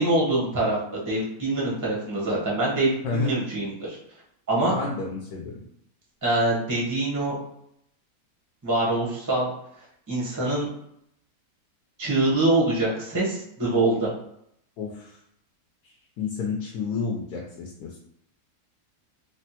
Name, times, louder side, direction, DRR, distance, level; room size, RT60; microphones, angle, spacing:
voice 1, 0.0-4.0 4.5-4.7 6.2-7.4 8.6-9.5 10.1-10.7 12.0-14.1, right 2 dB, 30° right, -5 dB, 0.3 m, -24 dB
voice 2, 4.7-5.6 14.8-15.2 16.2-18.0, left 4 dB, 80° left, -1 dB, 1.1 m, -30 dB
3.3 x 2.2 x 2.8 m, 0.72 s
omnidirectional pair, 1.7 m